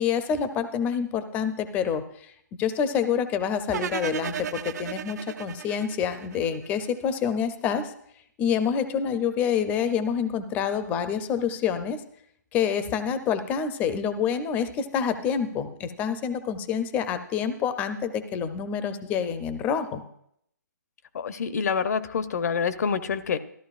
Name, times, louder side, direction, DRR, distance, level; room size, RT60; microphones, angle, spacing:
voice 1, 0.0-2.3 2.6-7.9 8.4-12.0 12.5-20.0, left 7 dB, 15° left, 10 dB, 0.5 m, -27 dB
sound 1, 3.7-6.9, right 8 dB, 65° right, 0.5 m, -35 dB
voice 2, 21.1-23.4, left 6 dB, 60° left, 13 dB, 0.7 m, -27 dB
13.5 x 12.5 x 2.4 m, 0.70 s
hypercardioid pair, 155°, 10 cm